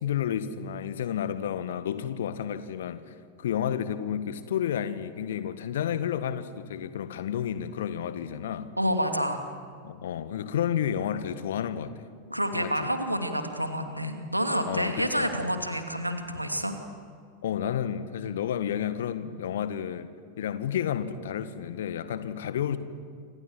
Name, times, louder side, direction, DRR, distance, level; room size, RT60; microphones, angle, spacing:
voice 1, 0.0-8.7 9.8-11.9 12.5-12.9 14.7-15.3 17.4-20.1 20.4-22.8, left 9 dB, 60° left, 12 dB, 1.7 m, -31 dB
voice 2, 8.8-9.4 12.3-16.7, equal, 90° right, 6 dB, 2.7 m, -28 dB
27.5 x 26.5 x 7.7 m, 2.1 s
figure-of-eight pair, 90°, 0 cm